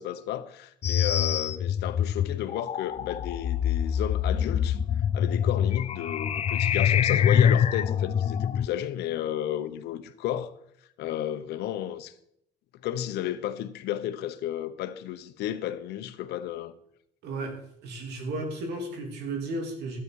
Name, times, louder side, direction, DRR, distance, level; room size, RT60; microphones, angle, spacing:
voice 1, 0.0-4.8 5.1-10.5 11.0-12.1 12.8-16.7, left 11 dB, 80° left, 0.9 m, -33 dB
sound 1, 0.8-8.7, left 8 dB, 40° left, 0.5 m, -25 dB
voice 2, 17.2-17.6 17.8-20.0, right 2 dB, 80° right, 2.6 m, -34 dB
12.5 x 8.3 x 4.7 m
cardioid pair, 110°, 17 cm